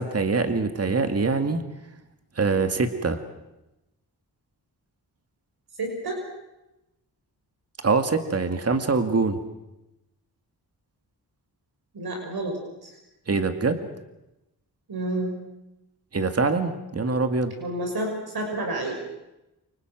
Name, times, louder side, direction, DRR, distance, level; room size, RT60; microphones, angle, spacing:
voice 1, 0.0-1.6 2.4-3.2 7.8-9.4 13.3-13.8 16.1-17.5, right 4 dB, 35° right, 7 dB, 2.2 m, -24 dB
voice 2, 5.8-6.2 11.9-12.9 14.9-15.4 17.6-19.0, right 1 dB, 65° right, 2 dB, 6.3 m, -30 dB
29.0 x 26.0 x 6.2 m, 0.93 s
wide cardioid pair, 90°, 40 cm